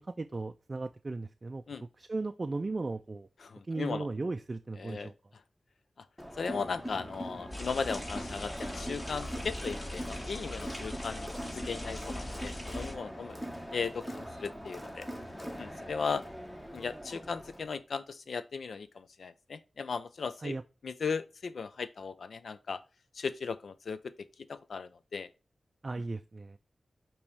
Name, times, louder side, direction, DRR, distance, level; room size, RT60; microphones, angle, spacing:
voice 1, 0.0-1.6 2.0-3.3 3.7-5.1 20.4-20.6 25.8-26.6, right 3 dB, 40° right, 0.3 m, -36 dB
voice 2, 3.4-4.1 4.8-5.1 6.4-13.4 13.7-15.1 15.6-16.2 16.7-20.6 20.8-22.8 23.1-24.0 24.5-25.3, left 5 dB, 80° left, 0.5 m, -37 dB
Crowd, 6.2-17.7, equal, 5° left, 1.1 m, -42 dB
sound 1, 7.5-12.9, left 1 dB, 30° left, 2.9 m, -41 dB
8.5 x 3.0 x 4.7 m
wide cardioid pair, 105°, 0 cm